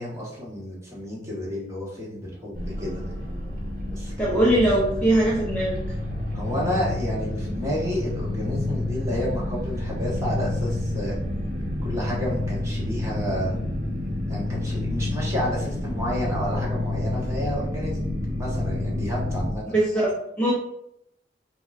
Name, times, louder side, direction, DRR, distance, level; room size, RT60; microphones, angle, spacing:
voice 1, 0.0-3.0 4.0-4.5 6.3-11.1 11.8-13.6 14.3-19.8, equal, 15° right, -5 dB, 1.1 m, -31 dB
sound 1, 2.5-19.5, left 1 dB, 50° right, 0.8 m, -29 dB
voice 2, 4.2-5.8 19.7-20.5, right 1 dB, 10° left, -6 dB, 0.5 m, -21 dB
5.3 x 2.1 x 2.4 m, 0.79 s
head